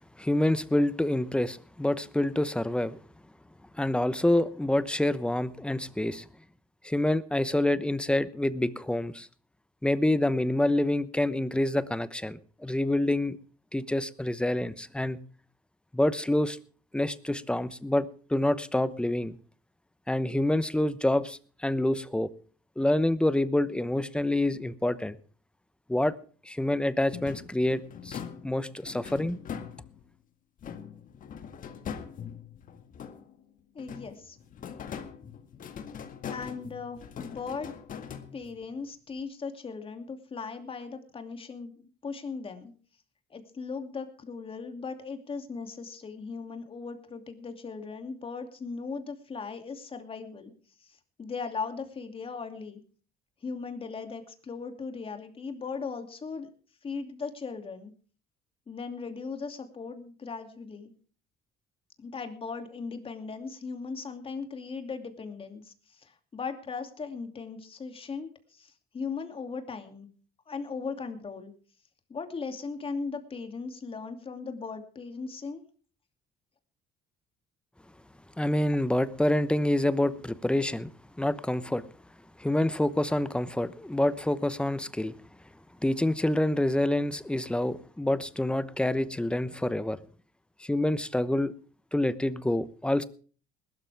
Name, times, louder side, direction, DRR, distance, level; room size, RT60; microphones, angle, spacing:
voice 1, 0.2-3.0 3.8-6.2 6.8-9.3 9.8-13.4 13.7-15.2 15.9-16.6 16.9-19.4 20.1-22.3 22.8-25.2 25.9-26.2 26.5-29.4 78.4-80.9 81.2-81.8 82.4-85.1 85.8-90.0 90.6-91.5 91.9-93.0, left 1 dB, 5° left, 0.9 m, -27 dB
sound 1, 27.1-30.1 30.6-33.4 33.8-38.7, left 7 dB, 50° left, 1.9 m, -42 dB
voice 2, 33.7-34.4 36.3-37.8 38.3-42.7 43.3-50.5 50.8-52.8 53.4-56.5 56.8-57.9 58.7-60.9 62.0-70.1 70.5-71.5 72.1-75.6, left 5 dB, 35° left, 2.6 m, -38 dB
20.5 x 12.5 x 3.5 m
cardioid pair, 110°, 17 cm